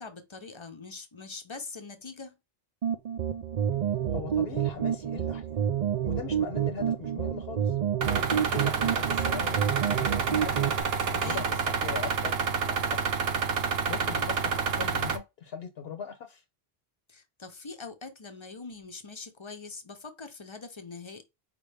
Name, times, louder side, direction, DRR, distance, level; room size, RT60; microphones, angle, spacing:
voice 1, 0.0-2.3 8.1-8.5 11.0-11.4 14.0-14.3 17.1-21.2, left 4 dB, 30° left, 0.8 m, -43 dB
sound 1, 2.8-10.8, right 9 dB, 50° right, 0.6 m, -29 dB
voice 2, 4.1-5.6 6.0-7.8 8.5-10.5 11.2-12.4 12.6-13.0 13.9-16.4, left 7 dB, 70° left, 1.0 m, -40 dB
sound 2, 8.0-15.2, right 5 dB, 75° right, 1.0 m, -28 dB
5.1 x 2.7 x 3.3 m
omnidirectional pair, 1.0 m